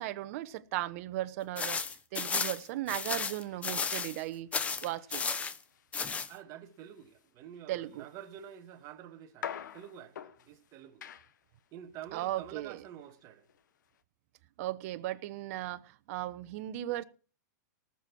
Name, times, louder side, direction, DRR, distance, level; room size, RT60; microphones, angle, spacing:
voice 1, 0.0-1.8 2.1-4.5 4.8-5.2 7.7-8.1 12.1-12.8 14.6-17.0, right 15 dB, 50° right, 1.0 m, -36 dB
sound 1, 1.6-4.2 4.5-5.6 5.9-6.3, left 5 dB, 15° left, 0.8 m, -33 dB
sound 2, 2.1-14.0, left 9 dB, 80° left, 1.1 m, -50 dB
voice 2, 6.3-11.0 11.7-13.5, right 10 dB, 35° right, 1.6 m, -48 dB
18.5 x 7.1 x 6.1 m
hypercardioid pair, 145°, 10 cm